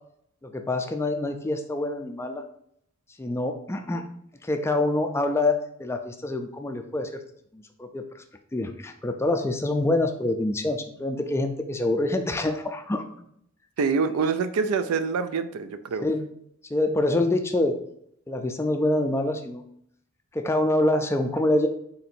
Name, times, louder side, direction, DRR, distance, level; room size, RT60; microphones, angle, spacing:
voice 1, 0.4-2.4 3.2-4.1 4.4-7.2 7.5-8.0 8.5-13.0 16.0-16.2 16.7-17.7 18.3-19.6 20.3-21.7, left 2 dB, 10° left, 6 dB, 0.3 m, -26 dB
voice 2, 13.8-16.0, right 5 dB, 90° right, 11 dB, 0.4 m, -25 dB
3.8 x 2.6 x 4.3 m, 0.71 s
head